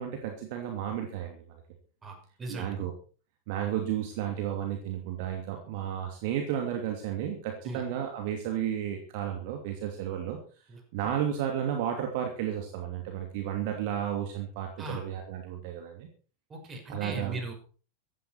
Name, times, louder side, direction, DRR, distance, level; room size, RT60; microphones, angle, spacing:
voice 1, 0.0-1.4 2.5-2.9 3.5-10.4 10.9-16.1 16.9-17.4, right 10 dB, 50° right, 3 dB, 2.8 m, -33 dB
voice 2, 2.0-2.8 7.6-7.8 14.8-15.0 16.5-17.5, right 2 dB, 20° right, 4 dB, 5.9 m, -38 dB
15.5 x 13.0 x 4.6 m, 0.39 s
figure-of-eight pair, 90°, 0 cm